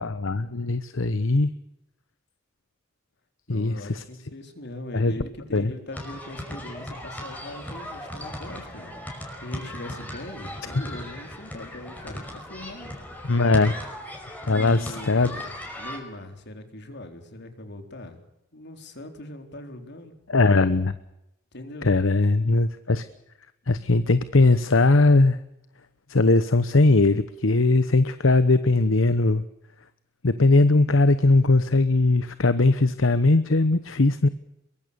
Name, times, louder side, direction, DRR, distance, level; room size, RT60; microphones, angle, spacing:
voice 1, 0.0-1.5 3.5-4.0 4.9-5.1 5.5-5.7 13.3-13.7 14.5-15.3 20.3-20.9 21.8-23.0 23.7-25.4 26.1-29.4 30.2-34.3, left 2 dB, 75° left, 13 dB, 1.0 m, -20 dB
voice 2, 3.5-8.9 9.4-13.0 14.4-18.2 18.5-20.1 21.5-21.9, left 1 dB, 60° left, 6 dB, 4.0 m, -40 dB
sound 1, 5.9-16.0, left 1 dB, 10° left, 5.5 m, -37 dB
23.0 x 23.0 x 7.0 m, 0.85 s
head